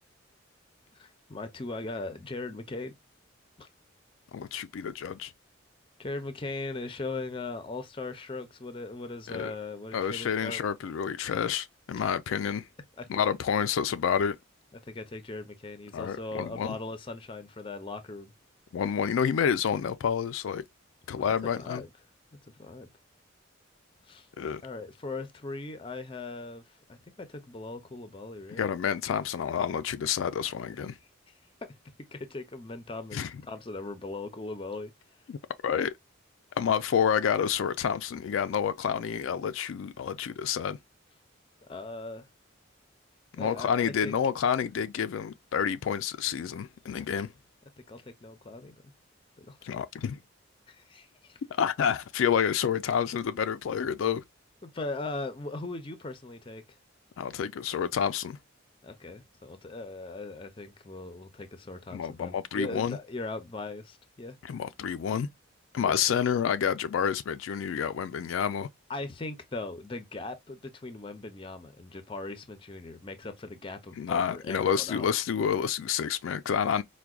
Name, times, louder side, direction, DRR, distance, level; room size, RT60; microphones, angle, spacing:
voice 1, 0.9-2.9 3.6-3.7 6.0-10.6 13.0-13.1 14.7-18.3 21.3-21.9 22.6-22.9 24.1-24.3 24.6-28.6 32.1-33.2 33.5-34.9 41.6-42.3 43.4-44.1 47.9-48.9 49.4-49.7 50.7-51.4 54.6-56.6 58.8-64.4 65.8-66.0 68.9-75.1, left 2 dB, 25° left, 0.5 m, -39 dB
voice 2, 4.3-5.3 9.3-9.5 9.9-12.6 13.1-14.4 15.9-16.8 18.7-20.6 21.1-21.8 24.4-24.6 28.5-31.0 33.1-33.3 35.3-35.4 35.6-35.9 36.6-40.8 43.4-47.3 49.6-50.2 51.5-54.2 57.2-58.4 61.9-63.0 64.4-65.3 65.7-68.7 74.0-76.8, left 7 dB, 80° left, 0.3 m, -29 dB
4.6 x 2.2 x 2.3 m
head